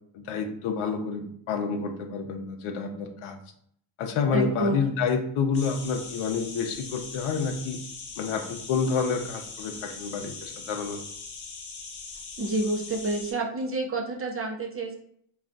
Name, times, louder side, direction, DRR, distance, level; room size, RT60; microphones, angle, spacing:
voice 1, 0.1-3.4 4.0-7.8 8.2-11.0, left 5 dB, 85° left, 5 dB, 0.6 m, -29 dB
voice 2, 4.3-4.8 12.4-14.9, right 2 dB, 30° right, 1 dB, 0.5 m, -28 dB
sound 1, 5.5-13.3, left 4 dB, 40° left, 0.5 m, -41 dB
2.4 x 2.2 x 3.7 m, 0.66 s
cardioid pair, 95°, 49 cm